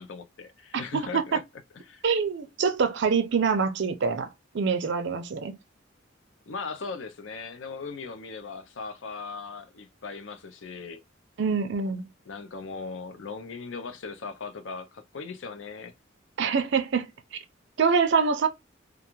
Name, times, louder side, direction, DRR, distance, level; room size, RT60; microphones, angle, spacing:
voice 1, 0.0-1.4 1.9-2.0 6.5-11.0 12.3-15.9, left 4 dB, 65° left, 0.5 m, -38 dB
voice 2, 2.0-4.3 4.5-5.6 11.4-12.0 16.4-17.1 17.8-18.5, right 5 dB, 60° right, 0.4 m, -25 dB
2.4 x 2.3 x 3.0 m
head